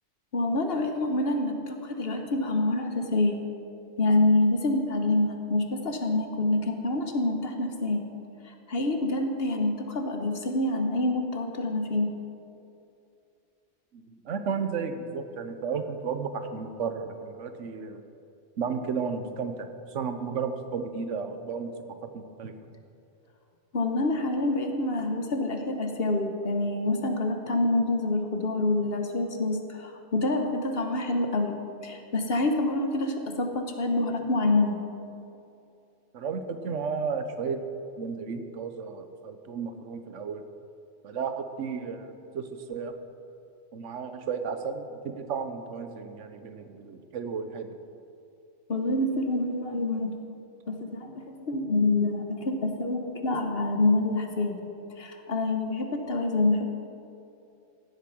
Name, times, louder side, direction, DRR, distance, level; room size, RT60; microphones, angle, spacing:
voice 1, 0.3-3.4 4.0-8.1 8.5-12.1 23.7-34.8 48.7-50.1 50.7-54.6 55.0-56.7, left 2 dB, 55° left, 5 dB, 1.3 m, -27 dB
voice 2, 13.9-18.0 18.6-21.7 22.1-22.5 36.1-37.6 38.0-40.4 41.0-42.9 43.7-47.8, right 5 dB, 85° right, 8 dB, 1.2 m, -33 dB
15.5 x 8.3 x 6.0 m, 2.6 s
omnidirectional pair, 1.2 m